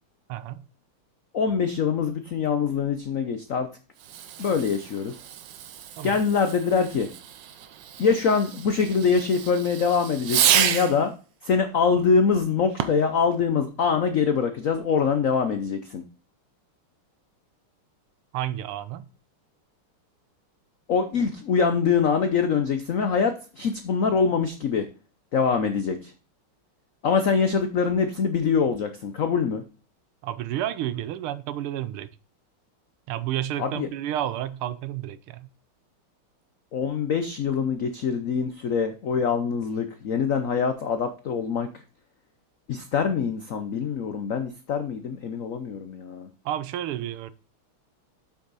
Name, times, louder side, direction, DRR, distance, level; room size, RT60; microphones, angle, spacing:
voice 1, 0.3-0.6 6.0-6.2 18.3-19.1 30.2-32.1 33.1-35.5 46.5-47.3, right 12 dB, 80° right, 1.6 m, -31 dB
voice 2, 1.3-3.7 4.4-5.1 6.0-7.1 8.0-11.1 11.4-16.0 20.9-24.9 25.3-26.1 27.0-29.6 33.6-33.9 36.7-41.7 42.7-46.3, left 5 dB, 75° left, 0.7 m, -24 dB
Fireworks, 4.0-11.1 12.7-13.2, right 10 dB, 65° right, 1.3 m, -29 dB
8.1 x 6.3 x 4.1 m
omnidirectional pair, 2.4 m